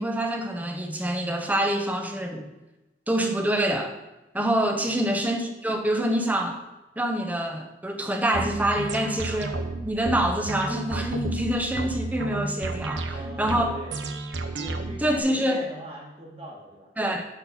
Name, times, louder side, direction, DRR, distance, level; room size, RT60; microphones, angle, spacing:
voice 1, 0.0-2.5 3.1-3.9 4.3-6.6 7.0-9.5 9.8-13.7 15.0-15.6 17.0-17.3, right 1 dB, 10° right, 3 dB, 0.8 m, -26 dB
voice 2, 4.7-5.0 12.7-14.0 14.6-17.2, equal, 35° right, -3 dB, 2.1 m, -42 dB
sound 1, 8.3-15.2, right 2 dB, 90° right, 0.8 m, -32 dB
9.9 x 4.5 x 5.6 m, 1.0 s
head